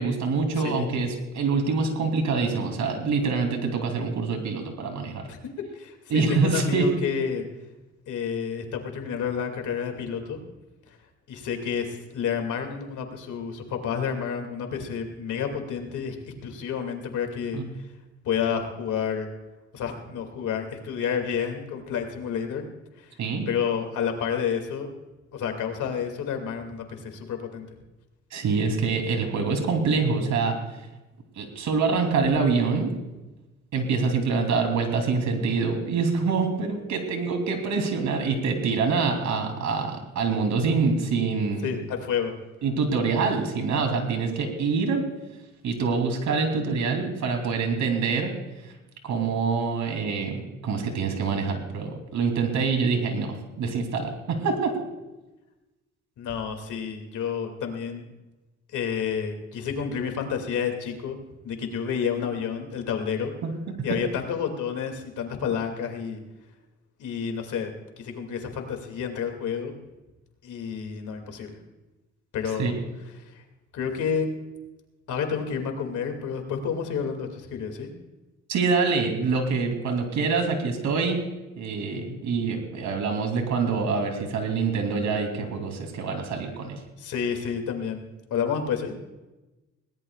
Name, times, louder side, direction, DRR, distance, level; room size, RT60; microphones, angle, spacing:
voice 1, 0.0-5.2 6.1-6.9 17.5-17.7 23.2-23.5 28.3-30.5 31.4-32.9 33.7-41.7 42.6-45.0 45.6-48.3 49.0-54.8 63.4-63.5 63.9-64.0 72.6-72.7 78.5-81.2 81.6-86.8, right 4 dB, 70° right, 4 dB, 3.1 m, -25 dB
voice 2, 0.6-0.9 5.3-5.4 5.7-7.4 8.1-10.4 11.3-16.2 16.4-17.6 18.2-19.3 19.7-22.6 23.0-23.1 23.5-24.9 25.3-27.7 41.6-42.3 56.2-58.0 58.7-61.2 61.4-63.3 63.8-66.2 67.0-67.7 68.0-69.7 70.4-71.6 72.3-72.7 73.7-74.3 75.1-77.9 87.0-88.0 88.3-88.9, left 7 dB, 75° left, 5 dB, 2.5 m, -30 dB
21.0 x 18.0 x 2.4 m, 1.1 s
cardioid pair, 90°, 30 cm